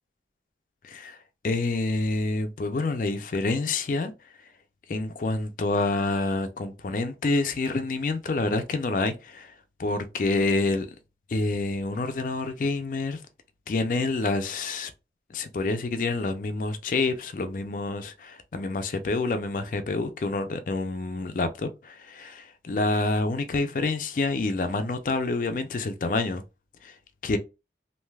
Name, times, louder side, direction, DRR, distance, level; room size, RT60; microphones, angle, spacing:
voice 1, 0.8-1.2 1.4-4.1 4.9-9.5 9.8-10.9 11.3-13.2 13.7-14.9 15.3-26.4 26.8-26.9 27.2-27.4, left 3 dB, 45° left, 0.4 m, -27 dB
3.2 x 2.6 x 2.2 m
head